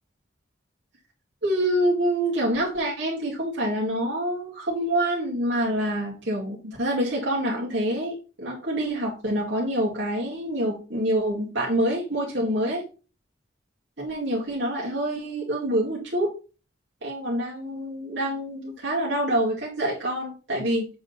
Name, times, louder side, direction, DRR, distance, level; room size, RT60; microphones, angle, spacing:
voice 1, 1.4-12.8 14.0-16.3 17.0-20.9, right 1 dB, 75° right, -4 dB, 2.2 m, -26 dB
7.8 x 3.9 x 4.1 m, 0.33 s
head